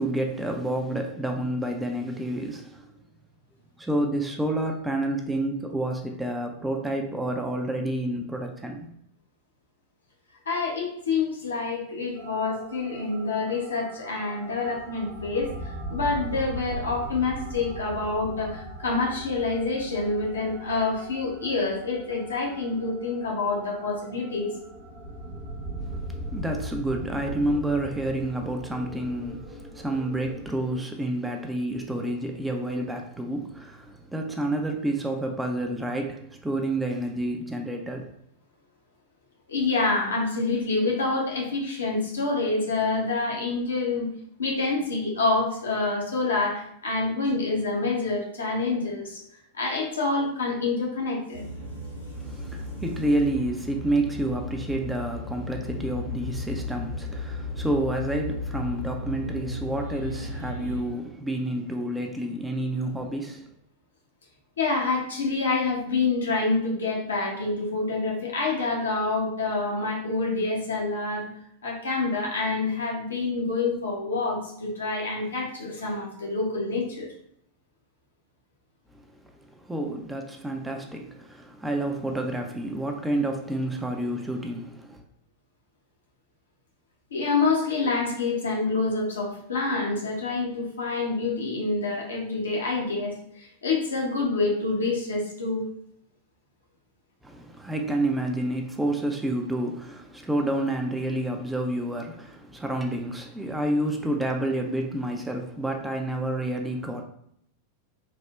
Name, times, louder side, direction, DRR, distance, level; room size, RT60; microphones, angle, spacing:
voice 1, 0.0-2.9 3.8-8.9 25.8-38.1 52.2-63.5 79.5-85.0 97.2-107.0, right 1 dB, 5° right, 0.3 m, -29 dB
voice 2, 10.5-24.5 39.5-44.1 44.4-49.2 49.5-51.4 64.6-71.3 71.6-77.1 87.1-95.7, left 3 dB, 70° left, 0.7 m, -27 dB
sound 1, 12.2-30.8, right 1 dB, 35° right, 0.6 m, -39 dB
sound 2, 51.3-60.8, left 2 dB, 75° right, 0.6 m, -35 dB
3.2 x 2.0 x 2.3 m
figure-of-eight pair, 90°, 0 cm